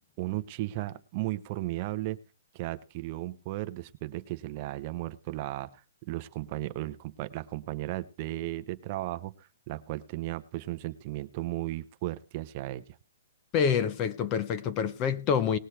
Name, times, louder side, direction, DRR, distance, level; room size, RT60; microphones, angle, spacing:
voice 1, 0.2-2.2 2.5-12.8, right 17 dB, 30° right, 0.6 m, -35 dB
voice 2, 13.5-15.6, left 7 dB, 25° left, 0.7 m, -27 dB
19.0 x 6.5 x 4.4 m
hypercardioid pair, 165°, 0 cm